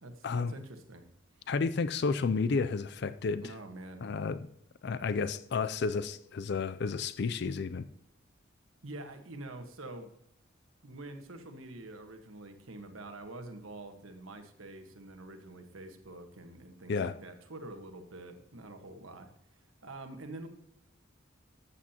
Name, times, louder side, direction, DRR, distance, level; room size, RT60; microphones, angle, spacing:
voice 1, 0.0-1.0 1.4-1.5 3.4-4.1 8.8-10.1 10.8-19.3 19.8-20.5, right 2 dB, 90° right, 1.4 m, -46 dB
voice 2, 1.5-3.4 4.0-4.5 4.8-7.8 16.9-17.1, left 4 dB, 55° left, 0.4 m, -31 dB
13.5 x 8.4 x 2.9 m
head